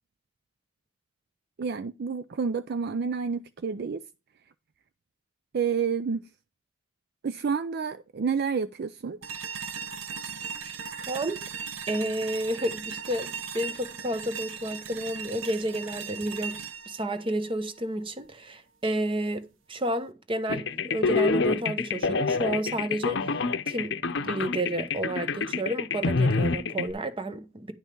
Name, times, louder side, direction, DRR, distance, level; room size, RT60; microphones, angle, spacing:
voice 1, 1.6-4.0 5.5-6.2 7.2-9.2, right 6 dB, 55° right, 0.4 m, -29 dB
sound 1, 9.2-18.3, right 6 dB, 80° right, 0.9 m, -38 dB
voice 2, 11.1-11.4 11.9-16.6 16.9-23.3 23.7-23.9 24.2-27.7, right 1 dB, 25° right, 0.9 m, -31 dB
sound 2, 20.5-26.9, left 4 dB, 60° left, 0.7 m, -27 dB
10.5 x 5.6 x 4.5 m
head